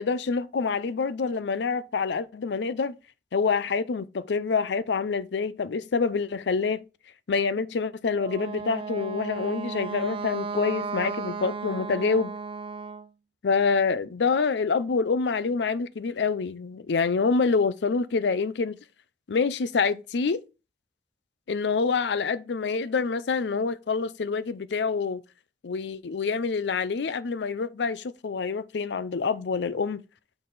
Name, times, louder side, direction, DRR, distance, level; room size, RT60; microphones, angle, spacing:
voice 1, 0.0-3.0 3.3-6.8 7.3-12.3 13.4-18.8 19.3-20.4 21.5-25.2 25.6-30.0, left 5 dB, 75° left, 0.5 m, -26 dB
Wind instrument woodwind instrument, 8.1-13.1, right 5 dB, 30° right, 0.4 m, -34 dB
6.7 x 4.0 x 4.0 m
head